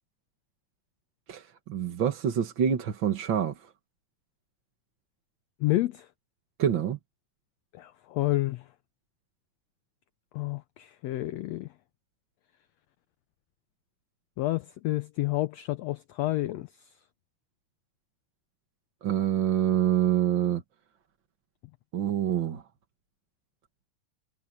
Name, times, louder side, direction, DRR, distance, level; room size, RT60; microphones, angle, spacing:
voice 1, 1.3-3.7 6.6-7.0 19.0-20.6 21.9-22.6, right 10 dB, 50° right, 1.7 m, -26 dB
voice 2, 5.6-6.1 7.7-8.6 10.3-11.7 14.4-16.7, left 17 dB, 80° left, 1.5 m, -29 dB
omnidirectional pair, 3.7 m